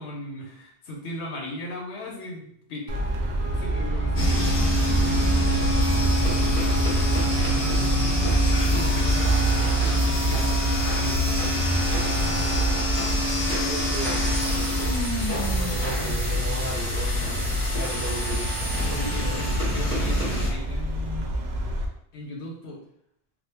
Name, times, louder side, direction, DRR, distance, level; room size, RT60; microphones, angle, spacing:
voice 1, 0.0-2.9 3.6-4.5 6.5-6.8 7.2-7.8 8.1-11.7 18.7-21.3 22.1-22.8, left 1 dB, 85° left, -1 dB, 1.0 m, -37 dB
Traffic noise roadway noise, 2.9-21.9, right 1 dB, 70° right, 0.8 m, -26 dB
sound 1, 4.1-20.5, equal, 10° left, 1.2 m, -26 dB
voice 2, 13.4-18.5 19.2-19.4, equal, 10° right, -7 dB, 0.6 m, -36 dB
3.4 x 2.3 x 2.8 m, 0.68 s
omnidirectional pair, 1.1 m